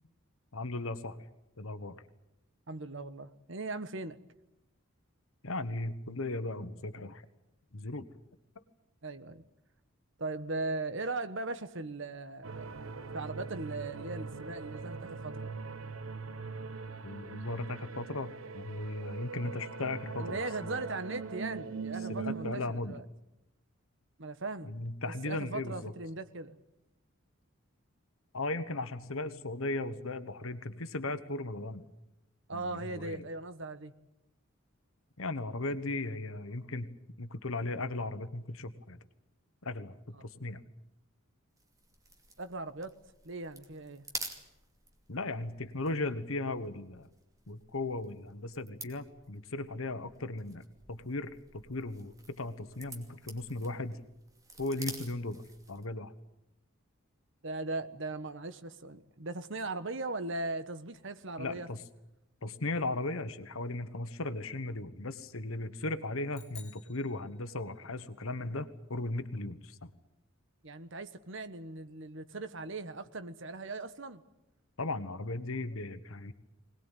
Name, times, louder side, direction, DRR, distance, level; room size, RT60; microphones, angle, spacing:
voice 1, 0.5-1.2 1.6-2.0 5.4-7.2 7.7-8.0 17.0-20.8 22.1-23.0 24.7-25.9 28.3-31.8 32.5-33.2 35.2-36.9 37.2-39.0 39.6-40.6 45.1-47.1 47.5-54.0 54.6-56.1 61.4-61.8 62.4-69.9 74.8-76.3, left 2 dB, 75° left, 1.3 m, -37 dB
voice 2, 2.7-4.2 9.0-9.4 10.2-15.6 20.2-23.0 24.2-24.7 25.0-26.6 32.5-33.9 40.1-40.3 42.4-42.9 43.2-44.0 57.4-61.7 70.6-74.2, right 2 dB, 60° right, 1.3 m, -39 dB
sound 1, 12.4-22.5, right 5 dB, 80° right, 1.0 m, -41 dB
sound 2, 41.6-55.9, right 3 dB, 15° right, 2.6 m, -49 dB
sound 3, 66.3-68.0, left 7 dB, 30° left, 4.3 m, -55 dB
22.0 x 19.5 x 9.2 m
head